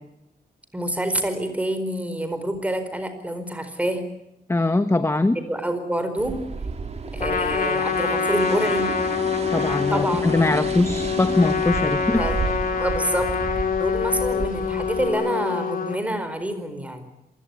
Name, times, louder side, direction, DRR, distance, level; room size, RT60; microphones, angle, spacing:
voice 1, 0.7-4.0 5.5-6.4 7.1-8.9 9.9-10.2 12.2-12.4 12.7-13.3 13.8-17.0, right 1 dB, 10° right, 9 dB, 4.6 m, -27 dB
voice 2, 4.5-5.4 9.5-12.2, left 2 dB, 15° left, 11 dB, 1.1 m, -21 dB
sound 1, 6.2-15.1, right 4 dB, 40° right, 3.4 m, -32 dB
Trumpet, 7.2-16.0, left 6 dB, 60° left, 3.0 m, -25 dB
27.0 x 17.5 x 9.8 m, 0.89 s
wide cardioid pair, 130°, 17 cm